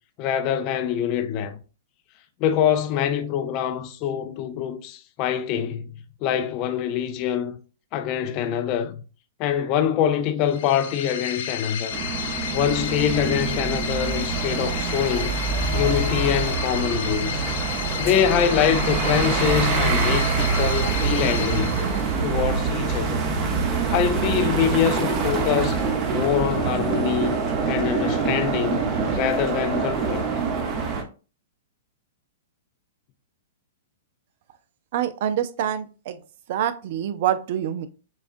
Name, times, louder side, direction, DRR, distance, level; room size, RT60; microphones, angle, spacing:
voice 1, 0.2-1.6 2.4-7.6 7.9-9.0 9.4-12.0 12.5-15.4 15.7-17.5 18.0-21.8 22.2-23.3 23.9-25.8 26.1-27.4 27.7-28.8 29.1-30.2, left 9 dB, 40° left, 0.5 m, -24 dB
sound 1, 10.4-22.4, left 8 dB, 65° left, 1.2 m, -32 dB
sound 2, 11.9-31.0, right 5 dB, 30° right, 0.9 m, -25 dB
voice 2, 34.9-36.2 36.5-37.9, right 10 dB, 55° right, 0.5 m, -26 dB
7.1 x 2.4 x 2.6 m
hypercardioid pair, 135°, 0 cm